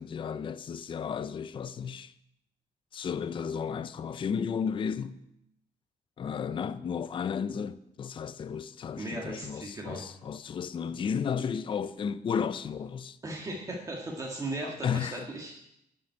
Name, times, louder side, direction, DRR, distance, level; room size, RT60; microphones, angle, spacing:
voice 1, 0.0-2.1 2.9-5.2 6.2-13.2 14.6-15.3, left 7 dB, 35° left, 0.5 m, -33 dB
voice 2, 9.0-10.1 13.2-15.5, right 2 dB, 20° right, 1.7 m, -37 dB
11.0 x 7.5 x 9.4 m
cardioid pair, 165°, 15 cm